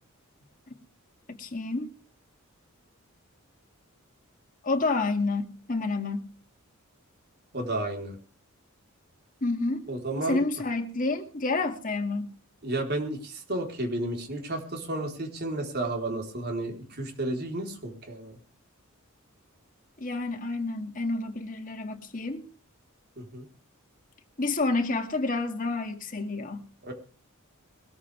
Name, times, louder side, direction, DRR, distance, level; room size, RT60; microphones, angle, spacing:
voice 1, 1.3-1.9 4.6-6.2 9.4-9.9 10.3-12.4 20.0-22.5 24.4-26.7, left 3 dB, 40° left, 2.3 m, -29 dB
voice 2, 7.5-8.2 9.9-10.4 12.6-18.4 23.2-23.5 26.8-26.9, right 2 dB, 50° right, 4.2 m, -32 dB
22.0 x 14.0 x 3.5 m
head